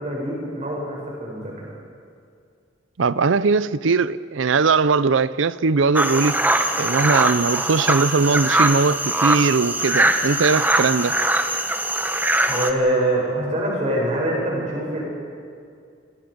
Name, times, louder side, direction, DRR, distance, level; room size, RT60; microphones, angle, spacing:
voice 1, 0.0-1.7 12.5-15.0, right 1 dB, 40° right, 8.0 m, -24 dB
voice 2, 3.0-6.4 6.8-11.1, right 4 dB, 85° right, 0.6 m, -20 dB
sound 1, 5.9-12.7, right 1 dB, 10° right, 1.1 m, -21 dB
28.0 x 23.5 x 5.3 m
head